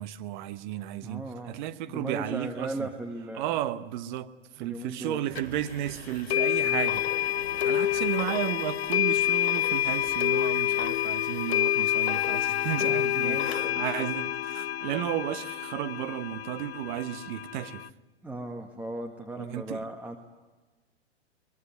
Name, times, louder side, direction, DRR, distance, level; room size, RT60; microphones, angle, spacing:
voice 1, 0.0-2.9 3.3-4.3 4.6-7.0 7.6-17.8 19.4-19.8, right 12 dB, 40° right, 1.2 m, -33 dB
voice 2, 1.0-1.6 1.9-3.5 4.6-5.2 6.6-6.9 13.1-13.8 18.2-20.2, right 2 dB, 5° right, 1.6 m, -37 dB
sound 1, 5.3-11.1, right 3 dB, 60° right, 7.2 m, -49 dB
sound 2, 5.4-5.5 6.3-17.9, left 12 dB, 65° left, 0.7 m, -28 dB
23.0 x 21.5 x 9.5 m
figure-of-eight pair, 110°, 35 cm